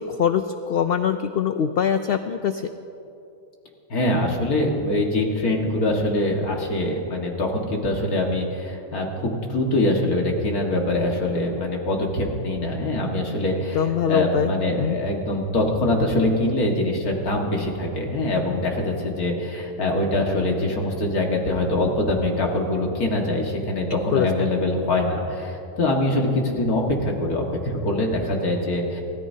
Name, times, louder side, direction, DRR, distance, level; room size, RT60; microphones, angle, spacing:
voice 1, 0.0-2.6 13.7-14.5 14.8-15.0 23.9-24.5, left 7 dB, 65° left, 9 dB, 0.5 m, -23 dB
voice 2, 3.9-29.0, left 1 dB, 85° left, 0 dB, 2.3 m, -24 dB
29.5 x 14.0 x 2.8 m, 2.8 s
omnidirectional pair, 1.5 m